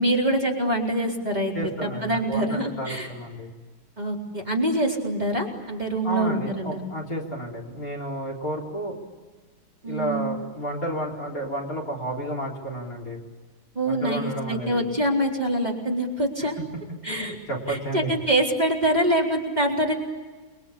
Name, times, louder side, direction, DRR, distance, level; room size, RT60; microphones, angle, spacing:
voice 1, 0.0-3.1 4.0-6.8 9.8-10.3 13.8-16.6 17.0-17.3 17.7-19.9, right 1 dB, 20° right, -1 dB, 4.1 m, -25 dB
voice 2, 1.5-3.5 6.0-9.0 9.8-13.2 13.8-14.8 16.4-16.5 17.0-18.1, right 1 dB, 45° left, 1 dB, 4.4 m, -31 dB
30.0 x 23.0 x 8.6 m, 1.4 s
omnidirectional pair, 2.2 m